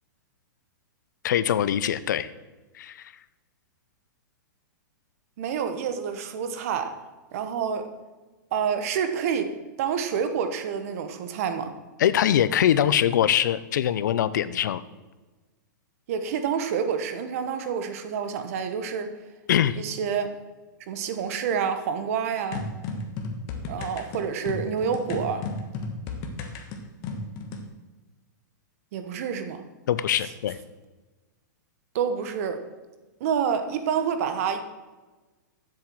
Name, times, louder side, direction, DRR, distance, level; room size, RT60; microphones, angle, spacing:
voice 1, 1.2-2.3 2.8-3.0 12.0-14.8 19.5-19.8 29.9-30.6, left 10 dB, 65° left, 15 dB, 0.7 m, -23 dB
voice 2, 5.4-6.9 7.3-7.9 8.5-11.7 16.1-19.1 19.7-20.3 20.9-22.6 23.7-25.5 28.9-29.6 31.9-32.6 33.2-34.6, right 7 dB, 45° right, 8 dB, 1.2 m, -28 dB
sound 1, 22.5-27.7, left 3 dB, 30° left, 1.3 m, -34 dB
7.8 x 7.3 x 7.7 m, 1.2 s
hypercardioid pair, 160°, 10 cm